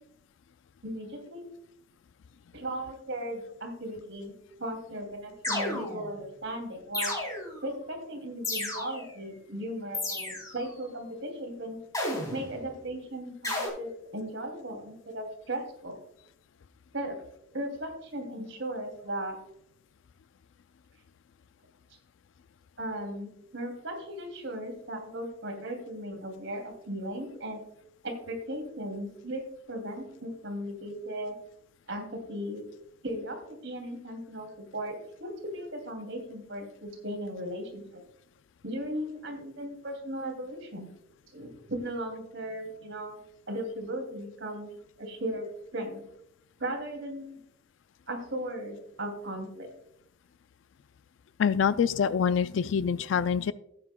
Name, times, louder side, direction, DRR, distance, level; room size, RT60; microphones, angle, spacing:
voice 1, 0.8-1.4 2.5-4.3 4.6-7.1 7.6-11.8 12.3-16.0 16.9-17.2 17.5-19.4 22.8-27.6 28.0-29.4 29.7-31.4 31.9-32.6 33.0-34.9 35.2-38.0 38.6-40.9 41.3-43.2 43.5-44.7 45.0-46.0 46.6-47.4 48.1-49.7, right 1 dB, 65° right, 3 dB, 2.8 m, -37 dB
sound 1, 5.4-6.2 6.9-7.7 8.4-9.2 9.9-10.6 11.9-12.6 13.4-13.7, left 2 dB, 15° left, 3.3 m, -33 dB
voice 2, 51.4-53.5, left 7 dB, 65° left, 14 dB, 0.4 m, -25 dB
16.5 x 8.7 x 2.2 m, 0.74 s
head